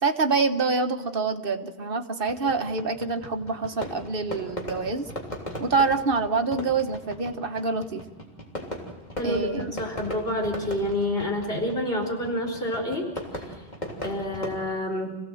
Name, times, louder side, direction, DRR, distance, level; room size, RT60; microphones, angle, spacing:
voice 1, 0.0-5.1 5.6-8.0 9.2-9.7, right 4 dB, 60° right, 6 dB, 1.5 m, -26 dB
Fireworks, 2.3-14.6, equal, 45° left, 3.6 m, -38 dB
voice 2, 9.2-13.1 14.0-15.1, left 1 dB, 65° left, 0 dB, 4.2 m, -28 dB
27.5 x 17.0 x 7.8 m, 1.1 s
omnidirectional pair, 1.1 m